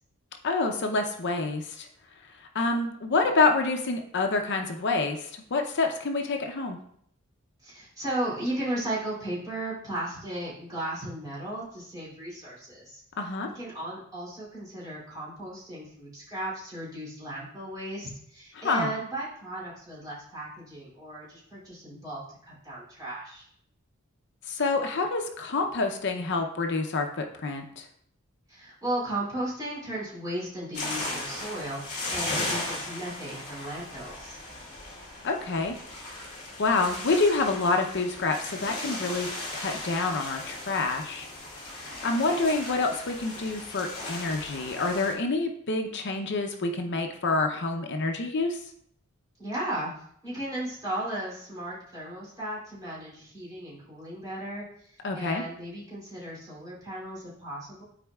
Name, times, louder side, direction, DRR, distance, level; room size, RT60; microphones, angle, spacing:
voice 1, 0.4-1.9 2.5-6.8 13.2-13.5 18.6-18.9 24.5-27.9 35.2-35.8 36.6-41.3 41.7-48.6 55.0-55.4, left 3 dB, 55° left, 4 dB, 0.7 m, -27 dB
voice 2, 7.6-13.0 13.5-23.5 28.5-34.4 49.4-49.9 50.2-57.8, right 1 dB, 20° right, -9 dB, 2.8 m, -35 dB
sound 1, 30.7-45.1, left 2 dB, 35° left, 2.2 m, -37 dB
12.5 x 4.4 x 2.3 m, 0.68 s
head